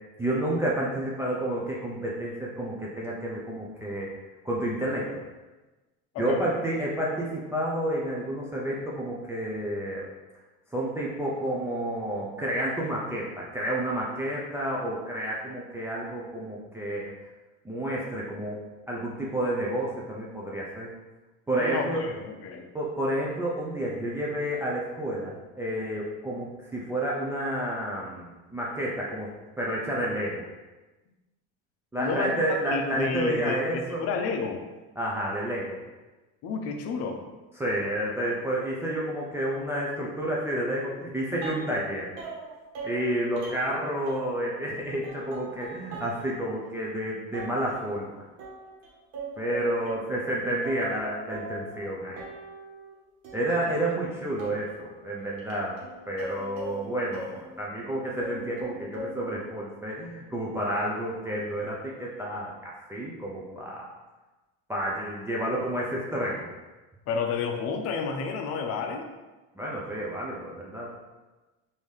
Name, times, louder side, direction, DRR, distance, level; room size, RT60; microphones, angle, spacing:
voice 1, 0.2-4.1 4.4-5.1 6.2-10.1 10.7-17.1 17.6-18.6 18.9-20.9 21.5-22.0 22.7-29.3 29.6-30.4 31.9-34.0 35.0-35.8 37.6-42.2 42.8-48.1 49.4-52.2 53.3-55.8 56.1-63.9 64.7-66.5 69.6-70.9, right 1 dB, 10° right, -5 dB, 0.4 m, -30 dB
voice 2, 6.1-6.5 21.5-22.7 32.0-34.6 36.4-37.2 67.1-69.1, left 5 dB, 55° left, 4 dB, 0.6 m, -31 dB
sound 1, 41.4-41.9 42.2-44.7 45.0-46.2 46.6-46.7 47.3-47.9 48.4-50.3 50.6-51.9 52.2-52.9 53.2-57.9 58.2-59.4, right 2 dB, 80° right, 1.2 m, -41 dB
3.5 x 2.7 x 3.1 m, 1.2 s
cardioid pair, 120°, 31 cm